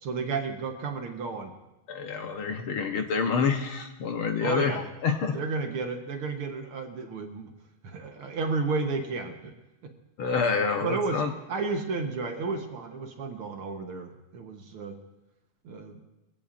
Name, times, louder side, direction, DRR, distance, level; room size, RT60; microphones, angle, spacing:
voice 1, 0.0-1.5 4.4-4.8 5.3-7.5 7.8-9.6 9.8-9.9 10.8-11.2 11.5-15.0 15.6-16.0, right 4 dB, 60° right, 4 dB, 1.6 m, -32 dB
voice 2, 1.9-5.4 10.2-11.3, left 5 dB, 65° left, 4 dB, 1.3 m, -27 dB
22.5 x 16.0 x 2.5 m, 0.99 s
omnidirectional pair, 3.4 m